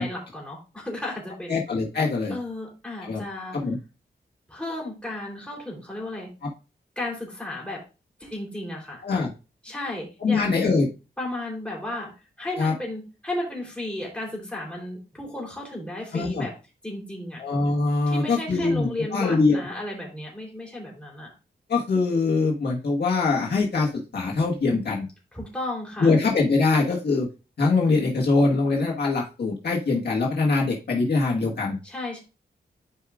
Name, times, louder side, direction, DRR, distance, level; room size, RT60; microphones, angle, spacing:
voice 1, 0.0-1.5 2.3-3.6 4.5-6.3 7.0-7.8 8.2-9.0 9.6-10.4 11.2-12.1 12.4-16.5 16.8-17.4 18.1-21.3 25.3-26.1 31.8-32.2, left 1 dB, 5° left, -3 dB, 3.6 m, -34 dB
voice 2, 1.5-2.3 3.0-3.2 3.6-3.8 9.0-9.3 10.2-10.9 12.6-12.7 16.1-16.5 17.4-19.6 21.7-25.1 26.0-27.3 27.6-31.8, left 3 dB, 70° left, -2 dB, 1.7 m, -23 dB
12.0 x 5.0 x 2.5 m, 0.30 s
wide cardioid pair, 125°, 18 cm